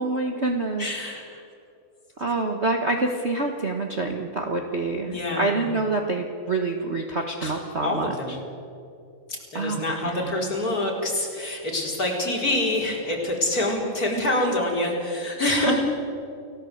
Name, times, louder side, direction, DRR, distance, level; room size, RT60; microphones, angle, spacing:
voice 1, 0.0-0.9 2.2-8.1 9.5-10.4 15.6-15.9, right 2 dB, 55° right, 3 dB, 0.7 m, -26 dB
voice 2, 0.8-1.4 5.1-5.6 7.4-7.5 7.8-8.4 9.3-15.9, left 1 dB, 30° left, -2 dB, 4.9 m, -26 dB
29.5 x 17.0 x 8.0 m, 2.6 s
omnidirectional pair, 3.3 m